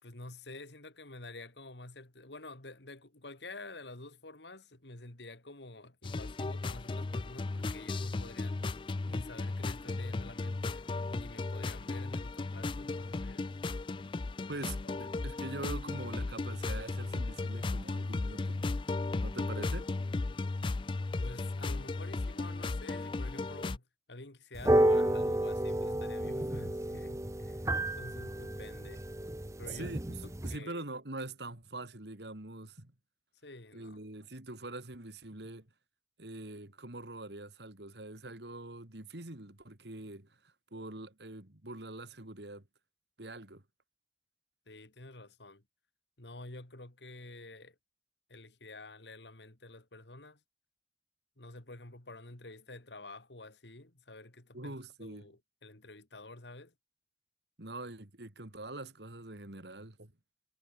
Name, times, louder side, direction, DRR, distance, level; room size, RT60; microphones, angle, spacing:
voice 1, 0.0-8.7 9.1-13.5 14.8-15.3 21.2-27.7 27.9-29.0 29.6-30.8 33.4-34.0 44.7-45.6 46.2-47.8 48.3-50.4 51.4-56.7, left 2 dB, 85° left, 3.0 m, -49 dB
sound 1, 6.0-23.8, left 3 dB, 30° left, 0.4 m, -35 dB
voice 2, 14.5-18.7 19.2-19.9 29.7-30.2 30.4-32.9 33.7-35.7 36.2-42.6 43.2-43.6 54.5-55.2 57.6-60.1, right 2 dB, 80° right, 2.8 m, -44 dB
sound 2, 24.6-30.6, right 1 dB, 15° right, 0.9 m, -31 dB
head